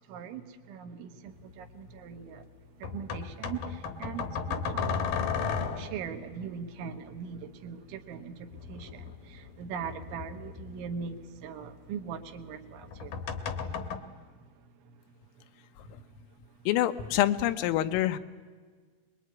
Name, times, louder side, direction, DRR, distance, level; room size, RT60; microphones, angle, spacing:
voice 1, 0.0-2.4 2.8-5.1 5.8-13.2, right 6 dB, 75° right, 3.5 m, -41 dB
sound 1, 1.4-1.5 2.8-6.1 8.5-11.2 12.8-14.0, left 6 dB, 70° left, 2.2 m, -34 dB
voice 2, 16.7-18.2, left 13 dB, 90° left, 3.6 m, -26 dB
25.5 x 21.5 x 9.5 m
omnidirectional pair, 5.8 m